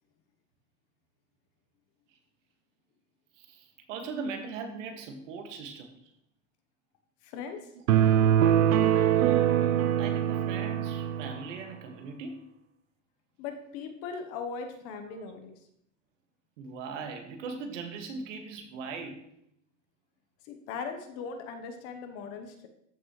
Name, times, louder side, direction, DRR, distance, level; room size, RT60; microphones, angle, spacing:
voice 1, 3.4-6.0 9.1-12.4 15.1-15.3 16.6-19.2, right 4 dB, 65° right, 5 dB, 1.9 m, -40 dB
voice 2, 7.2-7.7 13.4-15.5 20.4-22.7, left 5 dB, 35° left, 6 dB, 1.0 m, -39 dB
sound 1, 7.9-11.4, right 10 dB, 85° right, 0.9 m, -23 dB
13.5 x 6.1 x 3.1 m, 0.74 s
supercardioid pair, 160°, 40 cm